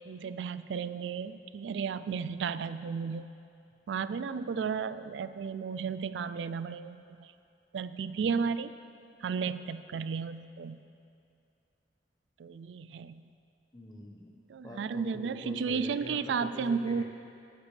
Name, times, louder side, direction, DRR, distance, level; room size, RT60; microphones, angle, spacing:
voice 1, 0.1-3.3 3.9-7.3 7.7-8.7 9.2-10.8 12.4-13.2 14.5-17.0, right 6 dB, 80° right, 14 dB, 0.3 m, -33 dB
voice 2, 13.7-14.4 14.6-17.0, left 1 dB, 20° left, 0 dB, 1.0 m, -45 dB
20.0 x 8.3 x 3.3 m, 2.6 s
head